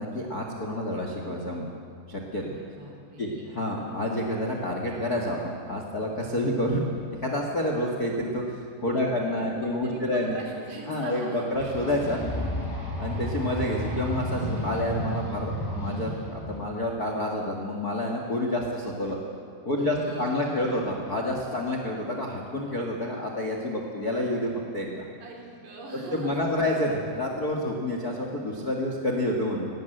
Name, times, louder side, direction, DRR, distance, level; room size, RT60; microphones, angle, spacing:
voice 1, 0.0-1.7 2.1-2.6 3.2-6.8 7.2-10.4 10.9-12.2 13.0-19.2 19.6-25.0 25.9-29.7, left 1 dB, 50° left, 1 dB, 1.1 m, -29 dB
voice 2, 2.5-3.5 8.9-11.5 19.8-21.0 25.2-26.4, right 2 dB, 85° right, -1 dB, 5.9 m, -43 dB
sound 1, 11.5-16.6, equal, 5° left, 5.9 m, -32 dB
20.0 x 17.5 x 7.9 m, 2.3 s
omnidirectional pair, 4.8 m